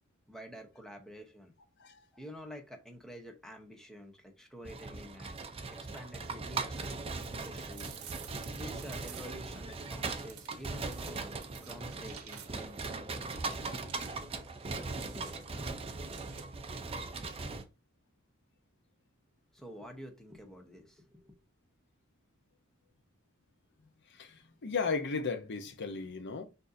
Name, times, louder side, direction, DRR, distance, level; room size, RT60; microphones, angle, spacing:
voice 1, 0.3-1.5 2.1-5.4 5.9-7.0 7.3-8.0 8.5-13.7 15.1-15.3 19.5-21.4, equal, ahead, 0.8 m, -49 dB
sound 1, 4.6-17.6, right 3 dB, 25° right, 0.5 m, -39 dB
sound 2, 7.2-9.5 10.2-12.8 13.7-16.7, right 9 dB, 75° right, 0.8 m, -52 dB
voice 2, 24.1-26.4, left 5 dB, 55° left, 0.7 m, -35 dB
6.3 x 2.7 x 2.6 m
head